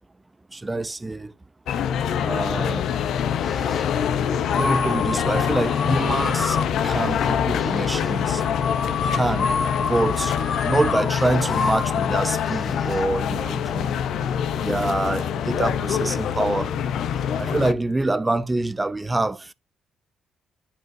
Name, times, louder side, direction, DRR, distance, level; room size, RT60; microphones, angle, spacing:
voice 1, 0.5-1.3 2.2-2.9 4.6-6.6 6.8-8.4 9.1-9.5 9.9-10.3 10.6-14.0 14.6-16.7 17.4-19.5, right 2 dB, 15° right, 0.6 m, -25 dB
sound 1, 1.7-17.7, left 8 dB, 75° left, 0.7 m, -25 dB
sound 2, 3.4-4.0 4.5-13.1, left 4 dB, 35° left, 1.6 m, -30 dB
10.5 x 5.0 x 2.7 m
cardioid pair, 90°, 0 cm